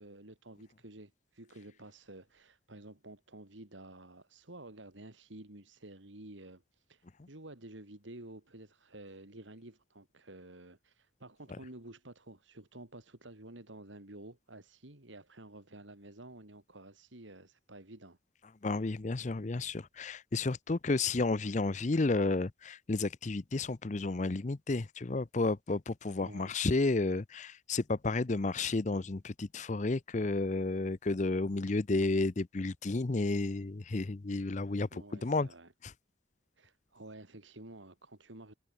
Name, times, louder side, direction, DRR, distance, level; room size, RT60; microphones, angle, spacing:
voice 1, 0.0-18.2 26.2-26.5 34.9-35.7 36.6-38.5, right 1 dB, 80° right, 3.0 m, -51 dB
voice 2, 18.6-35.5, left 3 dB, 40° left, 0.6 m, -32 dB
head